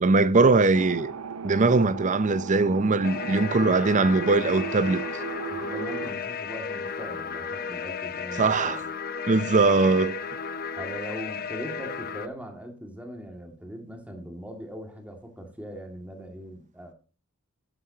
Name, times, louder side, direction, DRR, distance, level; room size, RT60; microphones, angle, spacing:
voice 1, 0.0-1.1 1.4-5.0 8.4-8.8 9.3-10.2, right 3 dB, 35° right, 0.6 m, -21 dB
sound 1, 0.7-6.1, right 6 dB, 80° right, 0.7 m, -36 dB
sound 2, 3.0-12.3, left 6 dB, 45° left, 0.6 m, -34 dB
voice 2, 5.5-8.9 10.8-16.9, equal, 5° right, 2.1 m, -40 dB
11.5 x 11.5 x 2.8 m
head